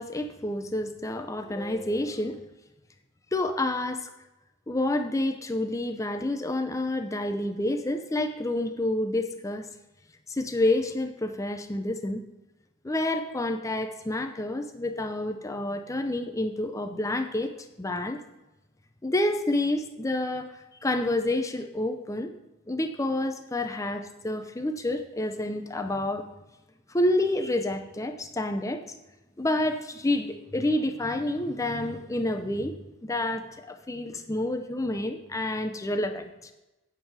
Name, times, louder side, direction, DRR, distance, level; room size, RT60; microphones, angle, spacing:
voice 1, 0.0-2.4 3.3-4.1 4.7-9.7 10.3-12.2 12.8-17.5 17.8-18.2 19.0-22.3 22.7-26.3 26.9-28.9 29.4-32.7 33.0-36.5, left 1 dB, 15° left, 6 dB, 0.5 m, -29 dB
9.0 x 6.9 x 4.6 m, 1.0 s
head